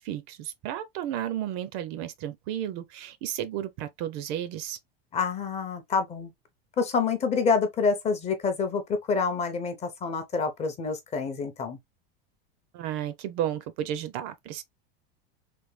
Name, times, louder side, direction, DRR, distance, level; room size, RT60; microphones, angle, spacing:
voice 1, 0.0-4.8 12.7-14.6, right 11 dB, 45° right, 0.5 m, -33 dB
voice 2, 5.1-6.3 6.8-11.8, left 5 dB, 20° left, 0.5 m, -27 dB
3.4 x 2.2 x 3.1 m
supercardioid pair, 160°, 31 cm